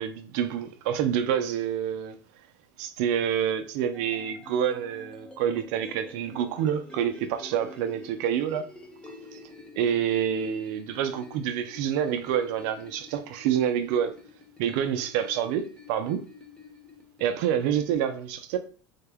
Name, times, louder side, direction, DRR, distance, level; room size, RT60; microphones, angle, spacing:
voice 1, 0.0-2.2 2.8-8.7 9.8-14.1 14.6-16.2 17.2-18.6, right 9 dB, 70° right, 0.5 m, -27 dB
sound 1, 3.9-18.0, left 3 dB, 10° left, 1.0 m, -49 dB
3.6 x 2.2 x 3.4 m
supercardioid pair, 110°, 10 cm